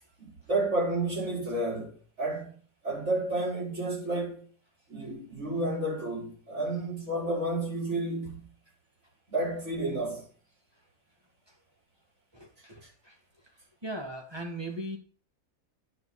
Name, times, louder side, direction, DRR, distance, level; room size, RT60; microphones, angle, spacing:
voice 1, 0.2-2.6 2.8-4.4 4.9-8.5 9.3-10.2, right 2 dB, 55° right, 5.6 m, -31 dB
voice 2, 12.3-13.2 13.4-13.5 13.8-15.0, right 1 dB, 20° right, 2.0 m, -39 dB
9.6 x 5.1 x 6.6 m
omnidirectional pair, 1.4 m